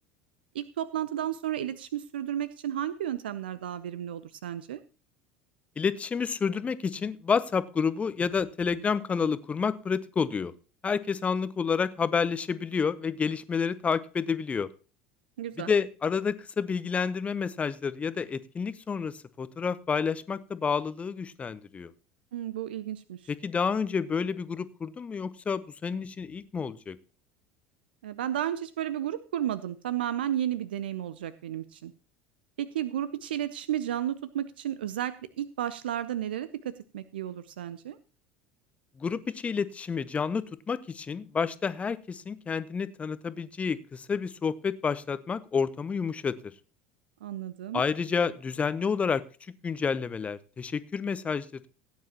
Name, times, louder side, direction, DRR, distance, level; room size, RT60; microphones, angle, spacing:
voice 1, 0.5-4.8 15.4-15.7 22.3-23.2 28.0-31.9 32.6-38.0 47.2-47.8, right 11 dB, 70° right, 15 dB, 0.5 m, -33 dB
voice 2, 5.8-10.5 10.8-14.7 15.6-21.9 23.3-27.0 39.0-46.4 47.7-49.2 49.6-51.7, left 5 dB, 25° left, 16 dB, 0.7 m, -29 dB
16.5 x 9.4 x 2.9 m, 0.34 s
figure-of-eight pair, 70°, 6 cm